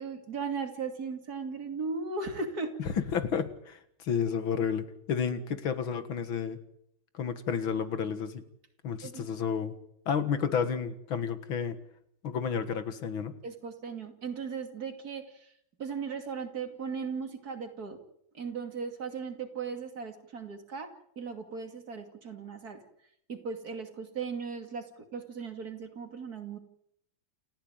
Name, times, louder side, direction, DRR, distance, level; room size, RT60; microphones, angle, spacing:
voice 1, 0.0-2.7 9.0-9.3 13.4-15.5 15.8-18.0 18.3-20.9 21.2-22.8 23.3-26.6, right 5 dB, 50° right, 5 dB, 3.1 m, -37 dB
voice 2, 2.8-6.6 7.1-8.4 8.8-9.7 10.1-11.8 12.2-13.4, left 7 dB, 85° left, 11 dB, 2.5 m, -31 dB
29.0 x 14.5 x 9.0 m, 0.74 s
omnidirectional pair, 2.1 m